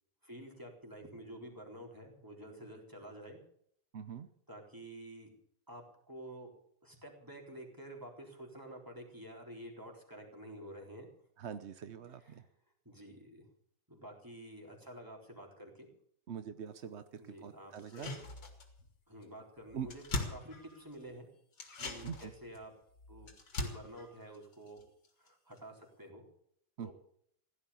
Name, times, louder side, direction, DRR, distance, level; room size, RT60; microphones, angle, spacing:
voice 1, 0.2-3.4 4.5-5.3 5.7-6.5 6.8-11.1 12.3-12.4 12.9-13.5 13.9-15.9 17.2-18.2 19.1-21.3 21.8-22.7 23.1-23.3 23.6-24.8 25.2-26.2 26.8-26.9, right 1 dB, 10° right, 1 dB, 3.9 m, -50 dB
voice 2, 3.9-4.3 11.4-12.5 16.3-18.1 19.7-19.9 22.0-22.3 26.8-26.9, right 7 dB, 75° right, 11 dB, 0.6 m, -43 dB
sound 1, 17.8-18.9 19.2-19.3 19.6-21.1 21.5-25.3 25.6-25.7, left 2 dB, 55° left, 2.9 m, -42 dB
16.5 x 12.0 x 7.2 m, 0.66 s
omnidirectional pair, 2.3 m